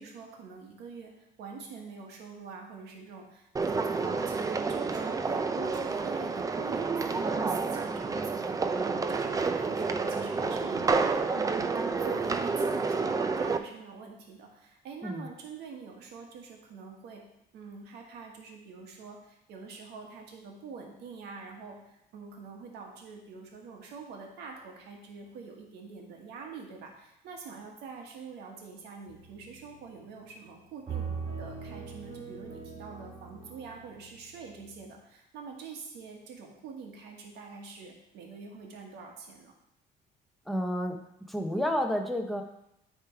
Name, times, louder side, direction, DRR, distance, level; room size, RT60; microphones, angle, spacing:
voice 1, 0.0-11.7 12.0-17.2 17.5-31.1 31.4-39.5, right 5 dB, 80° right, 1 dB, 1.5 m, -45 dB
sound 1, 3.6-13.6, right 4 dB, 20° right, 0.5 m, -29 dB
sound 2, 29.1-30.0 30.9-34.9, right 5 dB, 40° right, 2.3 m, -41 dB
voice 2, 40.5-41.0 41.3-42.4, equal, ahead, 3 dB, 0.8 m, -30 dB
9.4 x 3.6 x 4.5 m, 0.81 s
cardioid pair, 110°, 17 cm